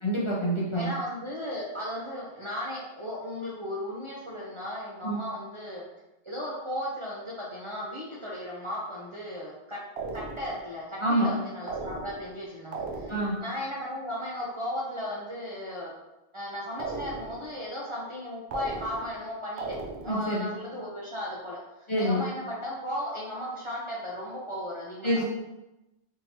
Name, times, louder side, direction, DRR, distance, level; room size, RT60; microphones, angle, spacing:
voice 1, 0.0-0.9 5.0-5.2 11.0-11.3 13.1-13.4 20.1-20.5 21.9-22.2 25.0-25.2, equal, 35° left, -6 dB, 0.5 m, -26 dB
voice 2, 0.7-5.9 6.2-9.8 10.1-13.1 13.4-15.9 16.3-19.8 20.0-25.2, left 1 dB, 40° right, -5 dB, 0.5 m, -36 dB
sound 1, 10.0-10.7 11.7-12.4 12.7-13.5 16.8-17.5 18.5-19.2 19.6-20.3, right 3 dB, 90° right, 0.8 m, -37 dB
3.7 x 2.8 x 2.8 m, 0.96 s
omnidirectional pair, 1.1 m